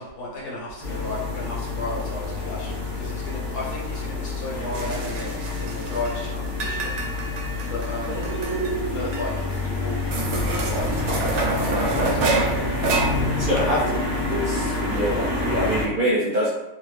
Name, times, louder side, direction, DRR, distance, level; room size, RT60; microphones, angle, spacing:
voice 1, 0.0-5.3 5.6-6.9 7.6-8.3 8.8-9.3 9.6-12.2 14.9-15.2, left 2 dB, 75° left, -5 dB, 1.7 m, -34 dB
sound 1, 0.8-15.9, left 2 dB, 15° right, 0.7 m, -28 dB
sound 2, 4.7-6.2 6.4-8.7 9.1-9.2 9.5-9.6 10.1-13.6, right 3 dB, 85° right, 1.2 m, -27 dB
voice 2, 13.3-16.5, equal, 65° right, -4 dB, 0.5 m, -25 dB
3.2 x 2.6 x 3.2 m, 0.95 s
omnidirectional pair, 1.7 m